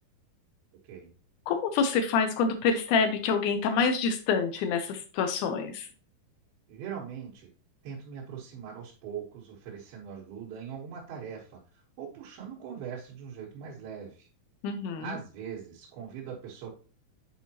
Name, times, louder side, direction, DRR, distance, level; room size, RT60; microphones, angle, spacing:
voice 1, 1.5-5.9 14.6-15.0, left 5 dB, 90° left, 6 dB, 1.7 m, -27 dB
voice 2, 6.7-7.5 7.8-14.3 15.0-16.7, right 7 dB, 85° right, -5 dB, 3.2 m, -41 dB
7.9 x 4.5 x 2.9 m, 0.38 s
omnidirectional pair, 4.3 m